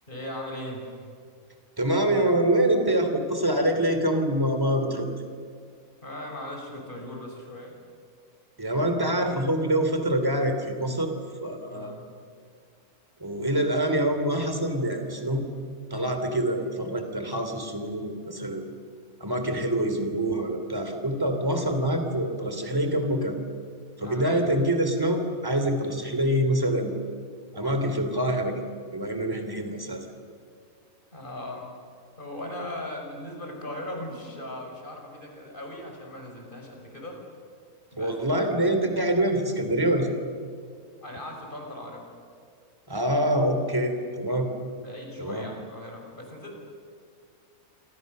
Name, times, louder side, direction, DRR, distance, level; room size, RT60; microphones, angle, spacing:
voice 1, 0.1-1.0 6.0-7.7 11.7-12.0 24.0-24.4 31.1-31.7 32.2-37.2 37.9-38.1 41.0-42.0 44.8-46.6, left 1 dB, 35° left, 1 dB, 6.0 m, -38 dB
voice 2, 1.8-5.1 8.6-11.1 11.4-12.0 13.2-15.4 15.9-18.7 19.2-23.3 24.0-26.9 27.5-28.5 28.9-30.1 38.0-40.1 42.9-44.5 45.2-45.5, right 1 dB, 15° right, 6 dB, 3.0 m, -25 dB
27.5 x 26.0 x 6.7 m, 2.2 s
omnidirectional pair, 1.6 m